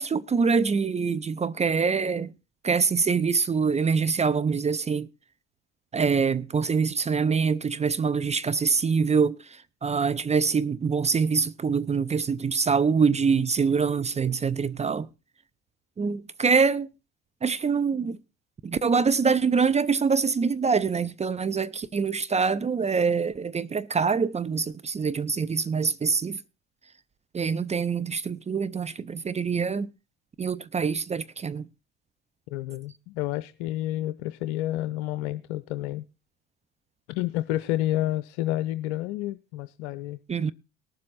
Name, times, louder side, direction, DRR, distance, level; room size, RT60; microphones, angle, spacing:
voice 1, 0.0-2.3 2.6-5.1 5.9-15.1 16.0-16.9 17.4-18.2 18.6-26.4 27.3-29.9 30.4-31.7 40.3-40.5, right 5 dB, 20° right, 0.5 m, -25 dB
voice 2, 32.5-36.1 37.1-40.2, left 15 dB, 70° left, 0.6 m, -30 dB
18.5 x 7.5 x 4.0 m
hypercardioid pair, 60°, 33 cm